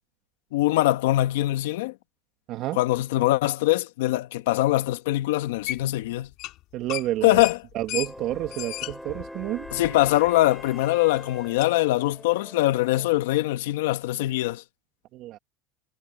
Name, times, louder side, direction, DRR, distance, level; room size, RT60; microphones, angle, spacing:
voice 1, 0.5-1.9 2.7-6.3 7.2-7.6 9.7-14.6, left 17 dB, 80° left, 1.4 m, -23 dB
sound 1, 5.7-6.0 6.3-6.6 6.9-10.3 10.6-10.7 11.6-11.7, left 17 dB, 55° left, 4.7 m, -35 dB
voice 2, 6.7-7.4 7.7-9.7 15.1-15.4, right 15 dB, 50° right, 1.3 m, -30 dB
sound 2, 8.0-13.1, left 1 dB, ahead, 3.2 m, -43 dB
supercardioid pair, 125°, 0 cm